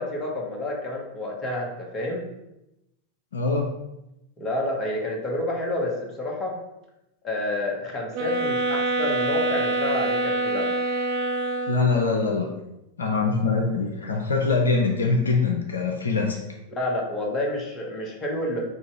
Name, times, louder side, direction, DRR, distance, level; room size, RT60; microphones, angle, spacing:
voice 1, 0.0-2.3 4.4-6.6 7.2-10.7 16.7-18.6, left 1 dB, 25° left, -1 dB, 1.1 m, -29 dB
voice 2, 3.3-3.8 11.7-12.5 13.0-16.4, left 4 dB, 70° left, 1 dB, 0.5 m, -23 dB
sound 1, 8.1-12.0, right 2 dB, 45° right, 0.6 m, -26 dB
3.7 x 2.8 x 4.6 m, 0.90 s
figure-of-eight pair, 90°, 0 cm